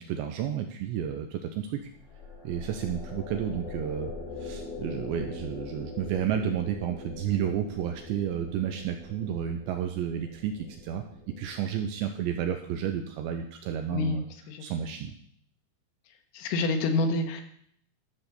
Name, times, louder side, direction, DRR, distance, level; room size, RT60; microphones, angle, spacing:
voice 1, 0.0-1.8 2.4-4.1 4.4-11.0 11.4-14.2 14.6-15.1, right 9 dB, 80° right, 5 dB, 2.6 m, -31 dB
sound 1, 1.8-13.2, left 3 dB, 50° left, 6.6 m, -43 dB
voice 2, 13.9-14.6 16.3-17.4, left 3 dB, 90° left, 5 dB, 3.9 m, -28 dB
13.0 x 6.0 x 6.8 m, 0.66 s
omnidirectional pair, 5.8 m